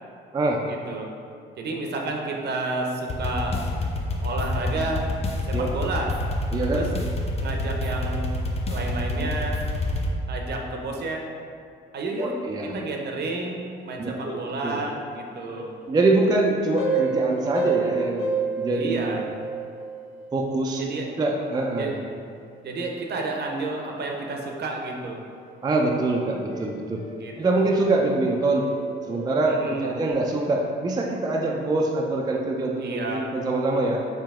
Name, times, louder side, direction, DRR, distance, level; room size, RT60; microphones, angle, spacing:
voice 1, 0.7-1.1 1.6-3.6 4.2-5.1 5.4-6.1 6.7-6.9 7.4-8.3 8.7-9.6 10.3-11.3 11.9-15.7 17.8-18.0 18.7-19.3 20.8-21.1 21.8-22.0 22.6-25.3 27.2-27.6 29.5-29.9 32.8-33.3, right 2 dB, 55° right, 1 dB, 0.7 m, -31 dB
sound 1, 3.1-10.1, left 1 dB, 30° left, 0.5 m, -28 dB
voice 2, 6.5-6.8 12.2-12.8 14.0-14.4 14.6-14.8 15.6-19.3 20.3-20.8 21.2-22.0 25.6-27.1 27.4-28.7 29.1-34.1, right 2 dB, 20° right, 0 dB, 0.4 m, -24 dB
sound 2, 16.7-20.5 22.1-22.3 24.7-24.8 25.5-25.6 26.1-26.6 27.0-27.4 27.9-28.3 28.5-30.1, right 4 dB, 80° left, 0.6 m, -30 dB
4.7 x 2.8 x 3.5 m, 2.4 s
cardioid pair, 90°, 20 cm